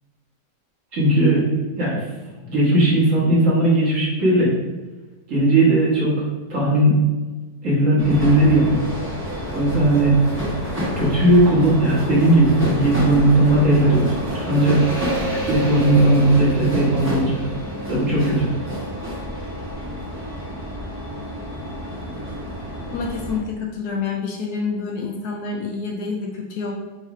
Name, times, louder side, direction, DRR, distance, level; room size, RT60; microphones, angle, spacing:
voice 1, 0.9-1.4 1.8-2.0 2.5-4.5 5.3-7.0 7.6-8.8 9.5-10.1 11.0-14.8 15.3-17.4 17.9-18.5, right 1 dB, 50° right, -7 dB, 1.6 m, -17 dB
sound 1, 8.0-23.4, equal, 10° right, 1.0 m, -28 dB
voice 2, 22.9-26.7, left 4 dB, 70° left, 0 dB, 1.0 m, -28 dB
4.0 x 2.6 x 4.6 m, 1.3 s
omnidirectional pair, 1.9 m